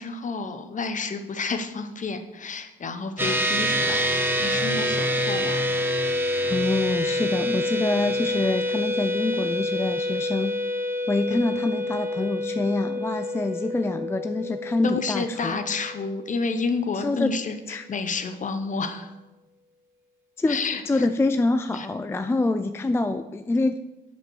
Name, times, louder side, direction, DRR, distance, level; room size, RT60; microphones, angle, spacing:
voice 1, 0.0-5.9 14.8-17.6 17.9-19.1 20.5-21.1 21.7-21.9, left 4 dB, 40° left, 8 dB, 0.9 m, -30 dB
sound 1, 3.2-16.8, left 1 dB, 10° right, 0.9 m, -27 dB
voice 2, 6.5-10.6 11.1-15.6 16.9-17.4 17.7-17.9 20.4-23.8, left 2 dB, 10° left, 9 dB, 0.4 m, -26 dB
7.3 x 5.3 x 6.4 m, 1.0 s
cardioid pair, 90°, 20 cm